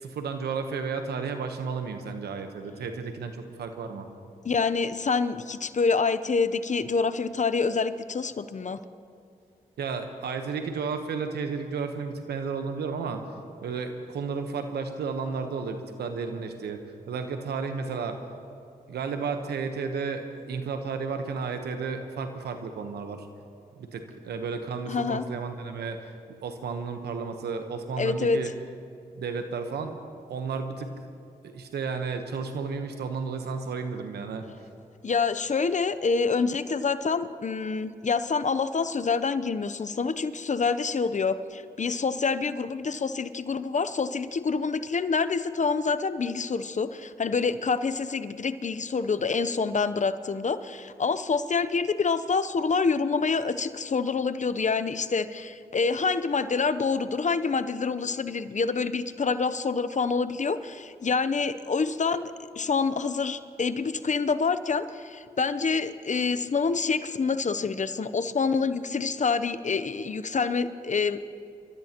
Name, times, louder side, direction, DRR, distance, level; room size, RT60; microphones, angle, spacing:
voice 1, 0.0-4.1 9.8-13.2 13.6-18.2 18.9-23.3 23.8-26.1 26.4-28.5 29.1-30.0 30.3-30.9 31.4-34.4, right 5 dB, 90° right, 6 dB, 1.1 m, -33 dB
voice 2, 4.4-8.8 24.9-25.3 28.0-28.4 35.0-62.2 62.6-71.3, left 4 dB, 50° left, 12 dB, 0.7 m, -27 dB
26.5 x 13.5 x 3.0 m, 2.5 s
supercardioid pair, 40°, 16 cm